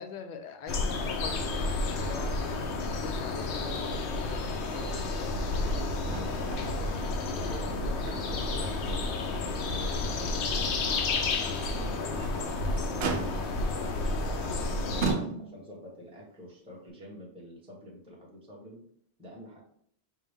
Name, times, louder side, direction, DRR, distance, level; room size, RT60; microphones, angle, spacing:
voice 1, 0.0-4.5, left 5 dB, 55° left, 7 dB, 0.6 m, -43 dB
sound 1, 0.7-15.1, left 3 dB, 85° left, 0.9 m, -31 dB
voice 2, 5.5-10.9 11.7-18.8 19.2-19.6, equal, 5° right, -3 dB, 0.9 m, -47 dB
Motor vehicle (road), 6.0-6.7 7.0-7.1 7.6-8.6 9.0-9.1 9.7-9.8 12.0-12.4 13.0-13.7 14.4-14.6 15.0-15.8 16.9-17.0, right 5 dB, 70° right, 0.8 m, -34 dB
5.3 x 2.1 x 3.4 m, 0.64 s
omnidirectional pair, 1.1 m